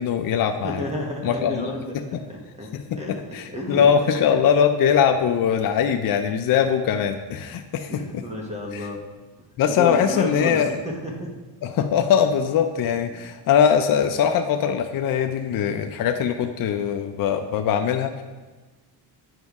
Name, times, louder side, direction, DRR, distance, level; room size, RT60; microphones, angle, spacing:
voice 1, 0.0-0.8 1.2-2.2 2.7-8.0 8.7-8.9 9.6-10.7 11.6-18.2, left 8 dB, 55° left, 5 dB, 0.5 m, -21 dB
voice 2, 0.6-2.7 3.0-3.9 7.9-9.0 9.6-10.6 10.8-11.3, left 1 dB, 15° right, -2 dB, 1.1 m, -31 dB
9.0 x 5.2 x 3.6 m, 1.3 s
cardioid pair, 130°, 42 cm